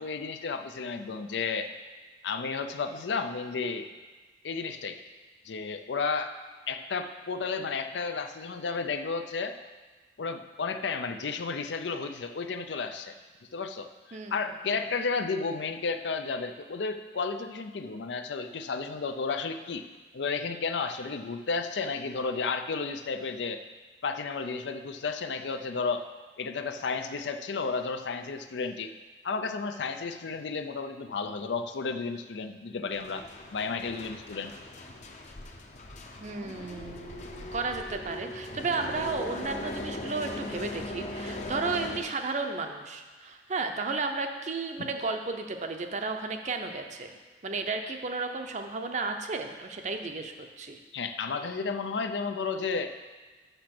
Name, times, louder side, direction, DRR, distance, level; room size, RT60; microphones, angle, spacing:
voice 1, 0.0-1.7 2.2-3.9 4.4-5.0 5.4-6.3 6.7-9.6 10.2-13.1 13.5-19.9 20.1-23.6 24.0-26.0 26.4-28.9 29.2-33.2 33.5-34.5 50.9-52.9, left 4 dB, 85° left, 7 dB, 0.5 m, -32 dB
voice 2, 14.1-14.8 36.2-50.8, right 3 dB, 45° right, 5 dB, 0.7 m, -33 dB
sound 1, 32.9-42.0, left 1 dB, 40° left, 0.7 m, -39 dB
6.8 x 5.9 x 5.9 m, 1.3 s
head